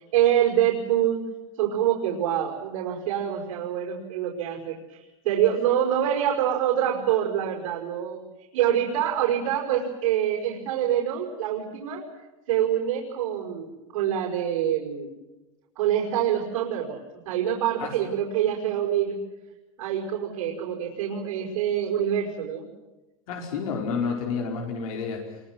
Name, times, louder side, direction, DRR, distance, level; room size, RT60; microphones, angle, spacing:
voice 1, 0.1-1.2 1.6-8.2 8.5-12.0 12.5-15.1 15.8-19.2 19.8-22.7, right 10 dB, 80° right, -1 dB, 5.4 m, -25 dB
voice 2, 23.3-25.4, left 5 dB, 85° left, 2 dB, 5.1 m, -30 dB
27.0 x 23.5 x 7.7 m, 1.1 s
supercardioid pair, 180°, 18 cm